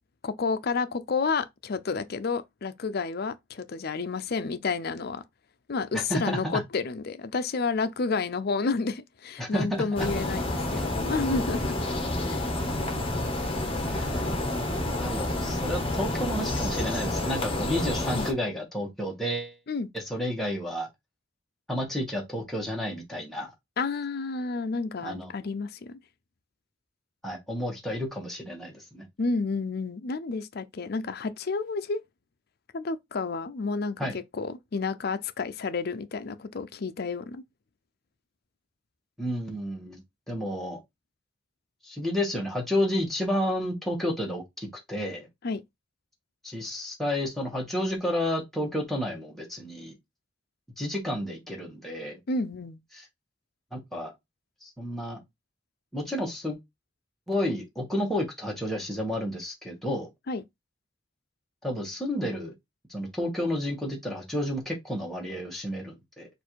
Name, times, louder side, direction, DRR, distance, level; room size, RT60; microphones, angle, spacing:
voice 1, 0.2-5.2 5.7-11.8 12.3-12.4 18.1-18.3 19.7-19.9 23.8-26.0 29.2-32.0 32.7-37.4 45.4-45.6 52.3-52.8 60.3-60.4, left 4 dB, 55° left, 0.5 m, -30 dB
voice 2, 5.9-6.6 9.4-9.8 13.9-14.4 15.0-19.6 19.9-20.9 21.7-23.5 25.0-25.3 27.2-29.0 34.0-34.1 39.2-40.0 40.3-40.8 41.8-45.3 46.4-49.9 50.8-52.2 52.9-53.0 53.7-54.1 54.6-55.2 55.9-56.6 57.3-60.1 61.6-62.5 62.9-66.3, left 1 dB, ahead, 1.3 m, -31 dB
sound 1, 10.0-18.3, left 1 dB, 30° left, 1.2 m, -29 dB
4.4 x 2.6 x 4.5 m
head